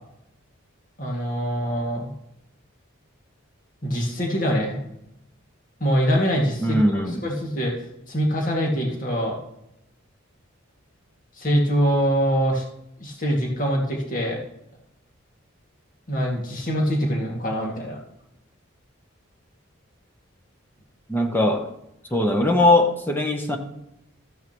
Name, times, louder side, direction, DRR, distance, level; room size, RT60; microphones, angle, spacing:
voice 1, 1.0-2.1 3.8-4.8 5.8-7.8 8.1-9.4 11.4-12.6 13.0-14.4 16.1-18.0, equal, 40° left, -1 dB, 2.1 m, -24 dB
voice 2, 6.6-7.2 21.1-21.7 22.1-23.6, left 1 dB, 10° left, 3 dB, 0.9 m, -20 dB
14.0 x 9.5 x 3.0 m, 0.84 s
head